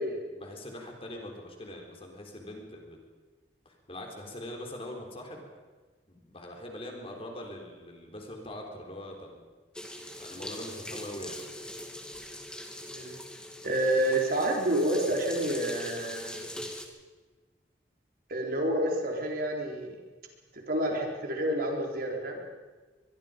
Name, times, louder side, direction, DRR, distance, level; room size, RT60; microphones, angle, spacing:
voice 1, 0.3-3.0 3.7-5.5 6.1-9.4 10.0-11.4, left 1 dB, 35° left, 1 dB, 4.0 m, -42 dB
sound 1, 9.7-16.9, left 1 dB, 5° left, 2.0 m, -42 dB
voice 2, 12.9-13.2 13.6-16.5 18.3-20.0 20.5-22.4, right 1 dB, 55° right, 1 dB, 4.0 m, -29 dB
24.0 x 22.5 x 5.2 m, 1.3 s
head